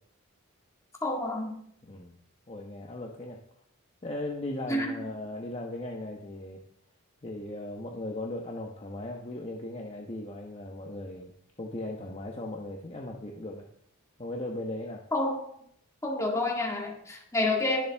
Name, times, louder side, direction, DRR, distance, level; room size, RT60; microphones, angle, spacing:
voice 1, 1.0-1.6 4.7-4.9 15.1-15.4 16.0-17.9, left 2 dB, 15° left, 0 dB, 2.0 m, -28 dB
voice 2, 1.8-2.2 2.5-3.4 4.0-6.6 7.2-11.3 11.6-13.7 14.2-15.0, left 1 dB, 30° left, 0 dB, 1.1 m, -37 dB
21.5 x 7.2 x 3.5 m, 0.68 s
head